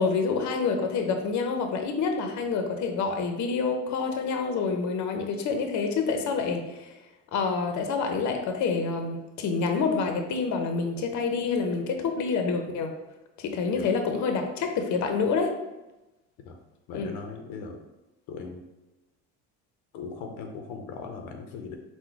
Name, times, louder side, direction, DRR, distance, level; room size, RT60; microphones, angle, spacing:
voice 1, 0.0-6.9 7.3-12.9 13.4-15.5 16.9-17.1, left 4 dB, 55° left, 4 dB, 0.7 m, -27 dB
voice 2, 16.9-17.8 18.3-18.6 19.9-21.8, left 5 dB, 90° left, 4 dB, 0.7 m, -38 dB
3.8 x 2.2 x 4.5 m, 1.0 s
cardioid pair, 105°, 34 cm